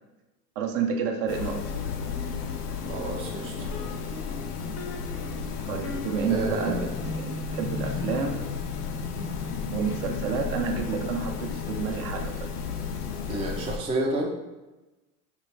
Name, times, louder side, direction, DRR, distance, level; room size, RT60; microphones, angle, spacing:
voice 1, 0.6-1.7 5.7-8.5 9.7-12.5, right 6 dB, 50° right, 4 dB, 0.7 m, -30 dB
sound 1, 1.3-13.8, left 5 dB, 85° left, 0.6 m, -34 dB
voice 2, 2.9-3.7 6.3-6.9 13.3-14.3, right 2 dB, 15° right, -1 dB, 0.4 m, -30 dB
sound 2, 3.7-13.4, left 4 dB, 35° left, 0.6 m, -38 dB
4.4 x 2.4 x 3.2 m, 1.1 s
hypercardioid pair, 85°, 46 cm